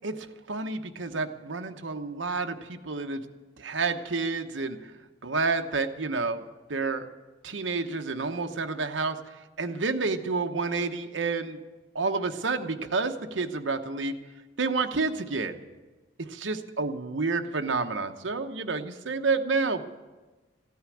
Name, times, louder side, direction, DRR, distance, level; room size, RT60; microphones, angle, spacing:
voice 1, 0.0-3.2 3.6-4.8 5.2-6.4 6.7-7.1 7.4-9.2 9.6-11.6 11.9-14.2 14.6-15.6 16.3-19.8, right 4 dB, 80° right, 6 dB, 1.0 m, -29 dB
15.5 x 9.5 x 8.6 m, 1.2 s
head